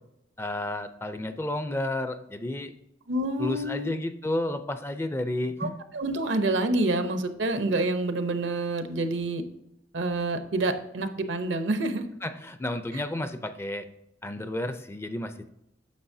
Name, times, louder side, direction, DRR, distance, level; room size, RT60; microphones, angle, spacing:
voice 1, 0.4-2.7 3.4-5.8 12.2-13.9 14.2-15.5, left 1 dB, 15° left, 10 dB, 0.4 m, -31 dB
voice 2, 3.1-3.9 5.6-9.4 9.9-12.1 12.9-13.0, right 2 dB, 75° right, 9 dB, 0.8 m, -28 dB
9.5 x 6.4 x 2.7 m, 0.81 s
head